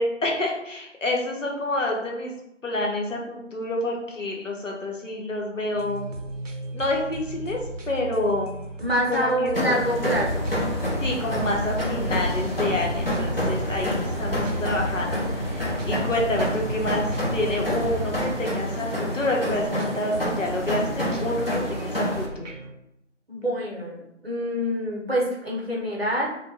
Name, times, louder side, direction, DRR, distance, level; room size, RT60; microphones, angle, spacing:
voice 1, 0.0-2.3 2.6-6.1 6.7-7.6 7.9-8.6 9.1-9.8 11.0-22.5, left 1 dB, 85° left, 0 dB, 0.8 m, -28 dB
sound 1, 5.7-22.7, right 2 dB, 80° right, 0.6 m, -37 dB
voice 2, 8.8-10.5 23.3-26.3, equal, 55° right, -3 dB, 0.8 m, -26 dB
sound 2, 9.5-22.3, equal, 50° left, 0.6 m, -29 dB
sound 3, 10.1-18.3, equal, 35° left, 1.1 m, -31 dB
2.3 x 2.2 x 2.9 m, 0.82 s
figure-of-eight pair, 175°, 37 cm